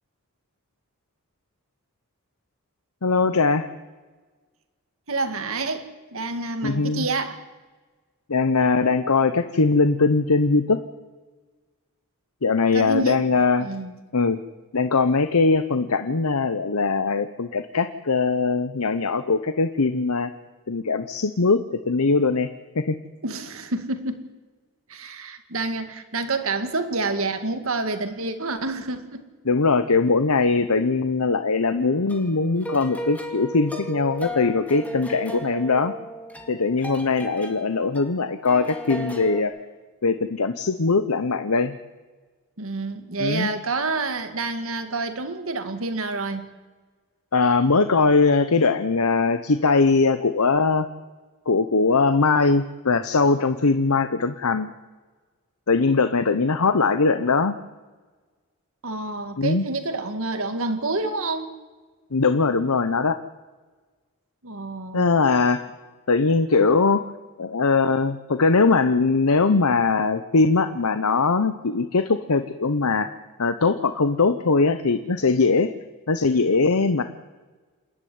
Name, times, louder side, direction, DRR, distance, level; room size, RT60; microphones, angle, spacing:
voice 1, 3.0-3.6 6.6-7.1 8.3-10.8 12.4-13.7 14.1-14.4 14.7-20.3 20.7-22.5 22.7-22.9 29.4-35.9 36.5-39.5 40.0-41.7 43.2-43.5 47.3-50.9 51.5-54.7 55.7-57.5 59.4-59.6 62.1-63.2 64.9-65.6 66.1-67.0 67.4-73.1 73.4-75.7 76.1-77.0, left 4 dB, 85° left, 10 dB, 0.9 m, -21 dB
voice 2, 5.1-7.4 12.7-13.9 23.2-24.3 24.9-29.3 42.6-46.5 58.8-61.5 64.4-65.2, right 3 dB, 70° right, 8 dB, 1.9 m, -28 dB
sound 1, 31.8-39.4, right 1 dB, 5° left, 2.4 m, -35 dB
28.0 x 11.5 x 9.5 m, 1.3 s
head